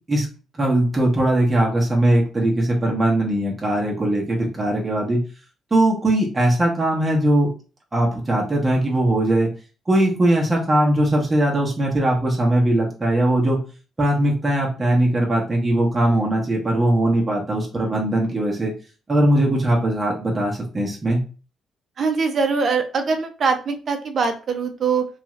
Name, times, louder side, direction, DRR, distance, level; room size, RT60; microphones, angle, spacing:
voice 1, 0.6-5.2 5.7-7.5 7.9-9.5 9.9-13.6 14.0-18.7 19.1-21.2, right 1 dB, 25° right, -2 dB, 0.9 m, -20 dB
voice 2, 22.0-25.1, right 5 dB, 50° right, 6 dB, 0.6 m, -22 dB
2.6 x 2.4 x 3.1 m, 0.35 s
cardioid pair, 90°, 0 cm